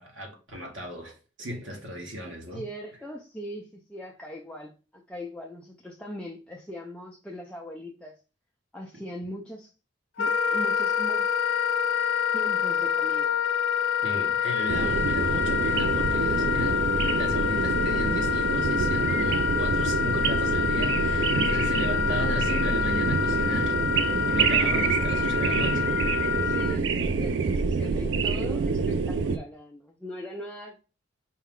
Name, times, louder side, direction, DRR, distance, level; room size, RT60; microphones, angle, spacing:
voice 1, 0.0-2.6 14.0-16.9 17.2-25.9, equal, 85° right, 1.2 m, -36 dB
voice 2, 2.5-8.2 8.7-9.7 10.2-11.3 12.3-13.3 19.6-19.7 21.5-21.9 26.3-30.8, equal, 5° left, 0.4 m, -40 dB
Wind instrument woodwind instrument, 10.2-26.8, left 8 dB, 90° left, 0.3 m, -27 dB
sound 1, 14.7-29.4, right 5 dB, 70° right, 0.4 m, -26 dB
4.4 x 2.4 x 3.6 m
head